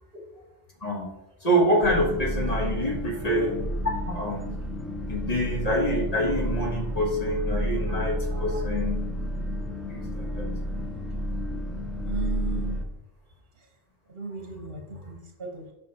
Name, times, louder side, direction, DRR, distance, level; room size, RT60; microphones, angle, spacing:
voice 1, 0.8-1.1 1.4-3.5 4.1-4.6 5.1-9.0 9.7-10.5 14.9-15.1, equal, 40° left, -1 dB, 1.4 m, -26 dB
sound 1, 1.8-12.8, equal, ahead, 0.6 m, -31 dB
voice 2, 12.0-12.8 14.1-15.7, right 3 dB, 65° right, 1 dB, 1.5 m, -35 dB
7.5 x 6.1 x 2.9 m, 0.99 s
omnidirectional pair, 1.1 m